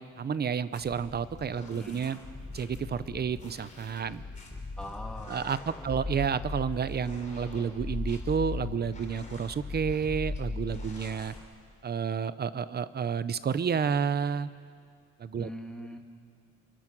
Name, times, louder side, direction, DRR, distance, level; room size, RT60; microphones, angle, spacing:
voice 1, 0.0-2.2 2.5-4.2 5.3-11.3 11.8-14.5 15.2-15.5, right 7 dB, 30° right, 15 dB, 0.6 m, -30 dB
sound 1, 0.7-11.4, left 3 dB, 25° left, 3.5 m, -39 dB
voice 2, 1.7-2.0 4.8-6.3 15.4-16.0, left 1 dB, 5° left, 1 dB, 1.9 m, -43 dB
28.5 x 22.5 x 6.1 m, 2.1 s
wide cardioid pair, 165°, 31 cm